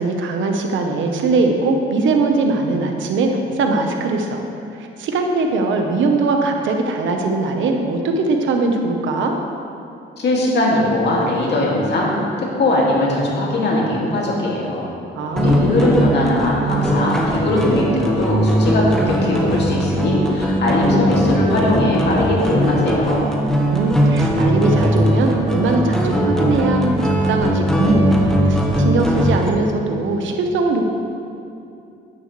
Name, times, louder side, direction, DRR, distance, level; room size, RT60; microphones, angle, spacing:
voice 1, 0.0-4.4 4.8-9.4 15.1-15.7 23.7-28.2 28.4-30.8, right 3 dB, 75° right, 3 dB, 1.1 m, -20 dB
voice 2, 10.2-12.1 12.4-14.9 15.4-23.3, left 1 dB, 60° left, -4 dB, 2.4 m, -20 dB
sound 1, 15.4-29.5, equal, ahead, 1.3 m, -19 dB
10.0 x 9.0 x 3.3 m, 2.6 s
cardioid pair, 90°, 20 cm